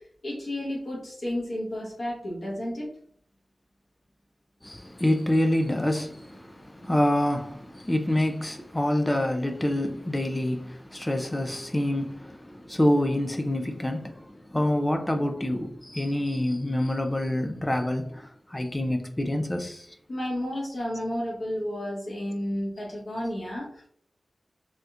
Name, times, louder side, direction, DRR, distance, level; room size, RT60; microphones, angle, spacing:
voice 1, 0.2-2.9 20.1-23.9, left 1 dB, 60° left, 1.0 m, -32 dB
voice 2, 4.6-19.9, left 1 dB, 15° left, 0.4 m, -27 dB
3.4 x 2.3 x 2.7 m
wide cardioid pair, 80°, 0 cm